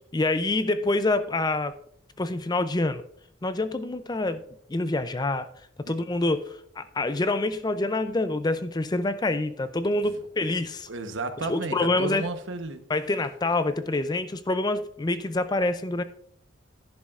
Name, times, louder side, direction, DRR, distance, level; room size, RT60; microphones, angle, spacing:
voice 1, 0.1-1.8 2.2-3.0 3.4-4.4 4.7-5.5 5.9-10.9 11.4-12.2 12.9-16.0, left 2 dB, 20° left, 12 dB, 0.4 m, -26 dB
voice 2, 10.9-12.8, right 3 dB, 85° right, 8 dB, 1.0 m, -33 dB
10.5 x 10.5 x 2.4 m, 0.64 s
head